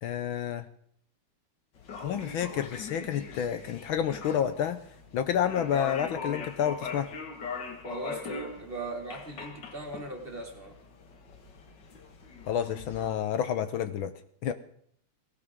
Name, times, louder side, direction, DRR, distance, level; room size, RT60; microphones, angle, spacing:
voice 1, 0.0-0.6 2.0-4.8 5.1-7.1 12.5-14.1 14.4-14.5, left 9 dB, 70° left, 10 dB, 1.5 m, -29 dB
sound 1, 1.8-13.1, left 4 dB, 55° left, 2.2 m, -41 dB
voice 2, 7.8-10.8, right 2 dB, 25° right, 1 dB, 2.6 m, -39 dB
18.5 x 18.0 x 3.7 m, 0.65 s
omnidirectional pair, 2.4 m